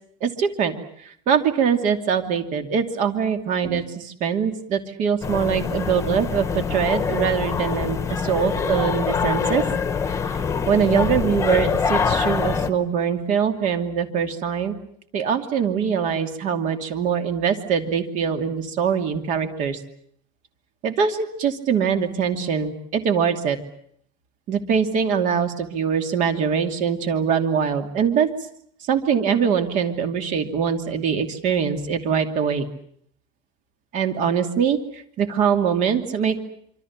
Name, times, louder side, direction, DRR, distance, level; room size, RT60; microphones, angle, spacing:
voice 1, 0.2-0.7 1.0-9.6 10.7-14.7 15.1-19.8 20.8-23.6 24.5-28.3 28.9-32.7 33.9-36.4, right 7 dB, 40° right, 7 dB, 2.7 m, -23 dB
sound 1, 5.2-12.7, left 6 dB, 15° left, 1.5 m, -24 dB
26.5 x 25.5 x 7.4 m, 0.66 s
cardioid pair, 175°, 19 cm